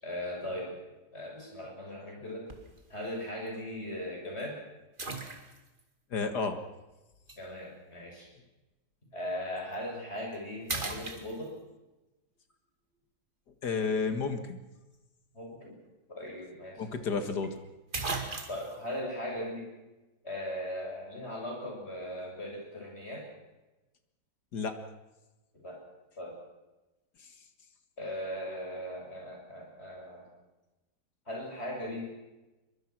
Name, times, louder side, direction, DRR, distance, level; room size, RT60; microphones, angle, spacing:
voice 1, 0.0-0.8 1.1-2.5 2.9-4.6 7.4-8.3 9.1-11.5 15.3-15.8 16.1-16.8 18.5-19.7 20.2-23.3 25.5-25.8 26.2-26.4 28.0-30.3 31.3-32.1, left 1 dB, 35° left, 0 dB, 7.4 m, -38 dB
sound 1, 2.5-2.8 3.5-3.6 5.0-5.8 7.3-7.4 9.6-9.8 10.2-10.4 10.7-11.8 15.9-16.0 16.3-16.4 17.4-17.5 17.9-18.8, right 3 dB, 30° right, 2.4 m, -37 dB
voice 2, 6.1-6.6 13.6-14.6 16.8-17.6 24.5-24.8, left 4 dB, 65° left, 8 dB, 2.3 m, -31 dB
23.0 x 22.5 x 6.2 m, 1.1 s
omnidirectional pair, 1.9 m